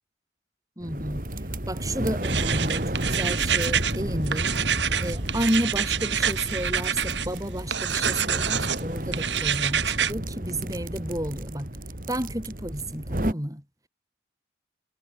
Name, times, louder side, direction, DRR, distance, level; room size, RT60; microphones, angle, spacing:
voice 1, 0.8-1.2 1.7-4.5 5.0-11.8 12.1-13.6, right 1 dB, 20° right, 7.1 m, -31 dB
sound 1, 0.8-13.3, right 1 dB, 50° right, 3.9 m, -32 dB
sound 2, 2.2-4.0 4.3-7.3 7.7-8.8 9.1-10.1, right 8 dB, 85° right, 2.5 m, -27 dB
head